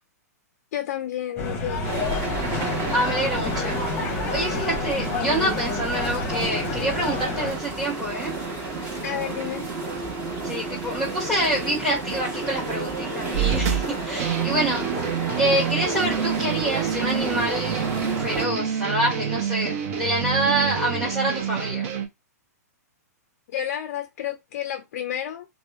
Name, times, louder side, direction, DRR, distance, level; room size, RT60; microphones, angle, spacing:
voice 1, 0.7-1.9 9.0-9.6 23.5-25.5, left 10 dB, 60° left, 0.4 m, -30 dB
sound 1, 1.4-7.5, left 3 dB, 25° left, 0.8 m, -29 dB
sound 2, 1.8-18.5, right 3 dB, 25° right, 1.1 m, -31 dB
voice 2, 2.9-3.8 4.1-8.3 10.4-15.1 15.3-17.9 18.2-21.9, right 1 dB, ahead, 0.9 m, -26 dB
sound 3, 13.3-22.1, right 8 dB, 55° right, 0.6 m, -27 dB
2.8 x 2.0 x 2.2 m
hypercardioid pair, 135°, 9 cm